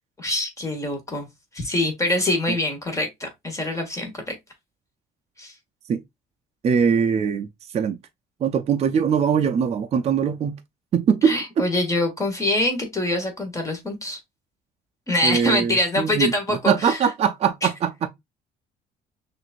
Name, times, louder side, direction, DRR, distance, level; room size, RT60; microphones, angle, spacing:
voice 1, 0.2-1.3 1.5-4.4 5.4-5.5 11.2-14.2 15.1-17.0, left 1 dB, 20° left, 1.4 m, -24 dB
voice 2, 6.6-7.5 7.7-8.0 8.4-10.5 10.9-11.7 15.2-18.1, right 7 dB, 40° right, 0.5 m, -22 dB
6.0 x 2.6 x 2.5 m
cardioid pair, 110°, 17 cm